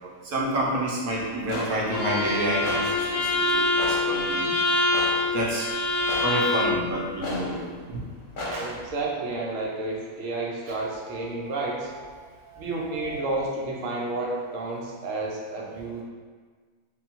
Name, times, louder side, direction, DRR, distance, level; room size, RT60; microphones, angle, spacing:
voice 1, 0.2-4.5 5.3-5.7 6.2-8.0 8.5-8.7 10.7-11.1 11.4-11.7 12.2-13.2, right 1 dB, 90° right, -4 dB, 1.3 m, -29 dB
sound 1, 1.3-8.9, left 1 dB, 45° left, 0.9 m, -36 dB
Bowed string instrument, 1.9-6.8, left 2 dB, 75° left, 1.0 m, -25 dB
voice 2, 8.6-11.9 12.6-16.0, right 2 dB, 70° right, -2 dB, 1.0 m, -31 dB
3.7 x 2.3 x 4.2 m, 1.5 s
omnidirectional pair, 1.5 m